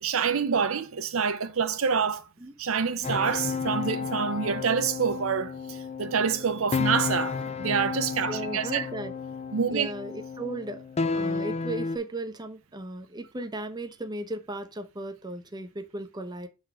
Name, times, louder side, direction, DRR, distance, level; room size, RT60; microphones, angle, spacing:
voice 1, 0.0-2.2 2.6-8.8 9.5-9.9, right 6 dB, 75° right, 0.6 m, -27 dB
sound 1, 3.0-12.0, left 5 dB, 30° left, 0.4 m, -32 dB
voice 2, 8.2-9.1 9.7-10.8 11.1-16.5, right 2 dB, 20° right, 0.7 m, -36 dB
6.1 x 4.0 x 4.3 m
head